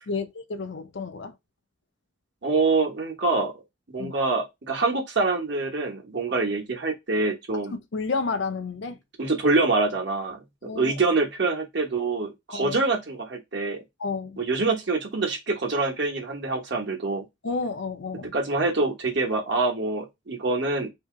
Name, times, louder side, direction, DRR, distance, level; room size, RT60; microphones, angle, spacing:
voice 1, 0.1-1.3 4.0-4.1 7.7-9.0 10.6-10.9 12.5-12.8 14.0-14.4 17.4-18.3, left 4 dB, 60° left, 0.5 m, -31 dB
voice 2, 2.4-3.5 3.9-7.8 9.2-13.8 14.4-17.2 18.3-20.9, right 3 dB, 60° right, 1.1 m, -25 dB
2.8 x 2.8 x 3.6 m
head